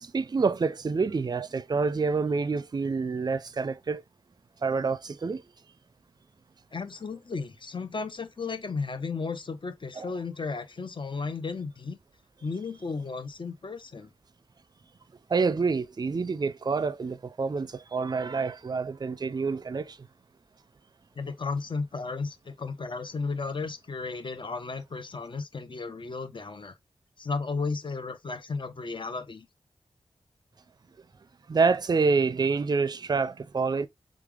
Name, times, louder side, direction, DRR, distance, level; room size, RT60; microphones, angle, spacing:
voice 1, 0.0-4.0 4.6-5.4 10.0-10.1 15.3-20.0 31.5-33.9, right 4 dB, 40° right, 0.4 m, -27 dB
voice 2, 6.7-12.0 12.4-14.1 21.2-26.7 27.2-29.5, left 4 dB, 50° left, 0.8 m, -34 dB
3.6 x 3.3 x 3.5 m
cardioid pair, 50°, 11 cm